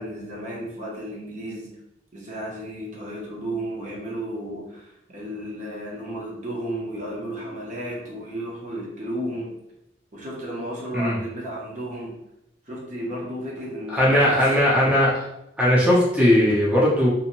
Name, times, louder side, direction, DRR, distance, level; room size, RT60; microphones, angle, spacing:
voice 1, 0.0-1.7 2.1-9.6 10.1-12.2 12.7-14.6, right 1 dB, 45° right, -3 dB, 0.7 m, -33 dB
voice 2, 13.9-15.1 15.6-17.1, left 1 dB, 5° right, -6 dB, 0.6 m, -18 dB
2.6 x 2.1 x 2.9 m, 0.84 s
head